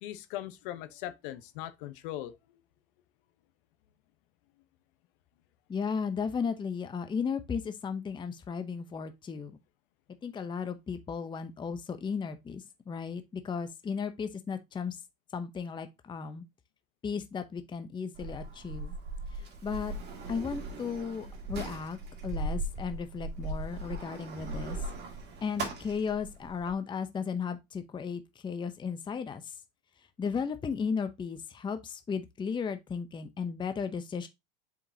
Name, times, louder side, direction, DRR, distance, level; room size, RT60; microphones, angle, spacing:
voice 1, 0.0-2.3, left 13 dB, 65° left, 1.0 m, -39 dB
voice 2, 5.7-9.6 10.2-15.0 15.3-16.4 17.0-18.9 19.4-19.9 20.3-24.8 25.4-29.6 30.2-34.3, left 6 dB, 15° left, 0.7 m, -35 dB
Sliding door, 18.1-26.7, right 2 dB, 35° right, 2.2 m, -38 dB
6.9 x 5.1 x 2.7 m
supercardioid pair, 115°, 29 cm